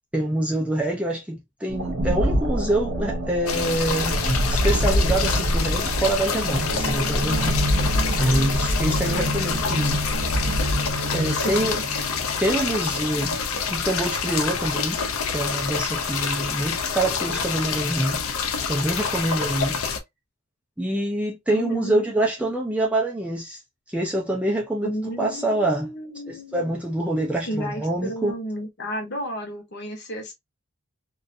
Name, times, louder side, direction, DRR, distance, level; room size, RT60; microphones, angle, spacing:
voice 1, 0.1-4.2 4.5-7.6 8.2-10.0 11.1-11.8 12.4-13.4 13.7-15.0 15.3-18.2 18.7-19.8 20.8-23.6 23.9-24.9 25.2-25.9 26.3-28.3, right 1 dB, 5° right, 0.3 m, -25 dB
sound 1, 1.7-12.7, equal, 50° right, 0.6 m, -25 dB
sound 2, 3.5-20.0, left 5 dB, 70° left, 0.4 m, -27 dB
voice 2, 11.3-11.8 21.5-22.1 24.8-26.7 27.5-30.3, right 1 dB, 50° left, 0.8 m, -32 dB
2.5 x 2.3 x 2.5 m
head